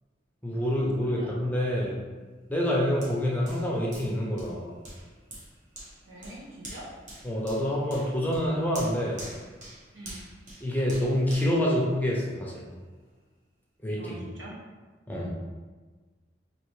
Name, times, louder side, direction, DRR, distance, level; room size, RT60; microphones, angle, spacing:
voice 1, 0.4-2.0 2.5-4.8 7.2-9.2 10.6-12.6 13.8-14.2 15.1-15.3, equal, 10° left, -4 dB, 0.6 m, -27 dB
voice 2, 1.0-1.4 2.8-3.0 6.0-6.9 9.9-10.2 14.0-14.5, right 1 dB, 90° right, -5 dB, 1.2 m, -44 dB
Hands, 3.0-12.5 13.0-13.1, right 1 dB, 45° right, 1.0 m, -46 dB
4.3 x 2.9 x 3.2 m, 1.4 s
head